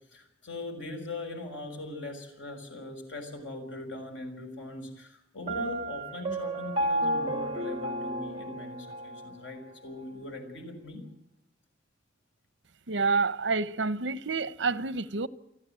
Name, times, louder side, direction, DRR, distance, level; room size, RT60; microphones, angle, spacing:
voice 1, 0.1-11.0, left 2 dB, 80° left, 6.3 m, -40 dB
Piano, 5.5-9.3, right 1 dB, 30° right, 2.8 m, -32 dB
voice 2, 12.9-15.3, right 4 dB, 70° right, 0.9 m, -28 dB
29.5 x 12.0 x 9.1 m
head